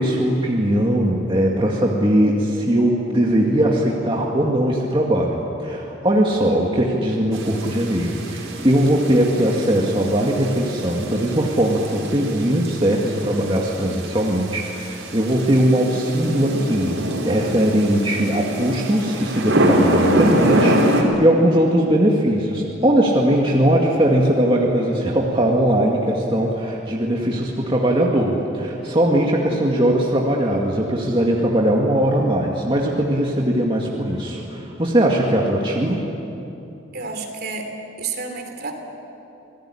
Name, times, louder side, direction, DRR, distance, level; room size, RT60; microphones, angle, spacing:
voice 1, 0.0-36.0, right 1 dB, 25° right, -2 dB, 2.1 m, -20 dB
sound 1, 7.3-21.0, right 1 dB, 85° right, 4.5 m, -25 dB
voice 2, 36.9-37.7 38.0-38.7, right 4 dB, 50° right, 4 dB, 3.3 m, -30 dB
27.0 x 18.5 x 10.0 m, 2.8 s
head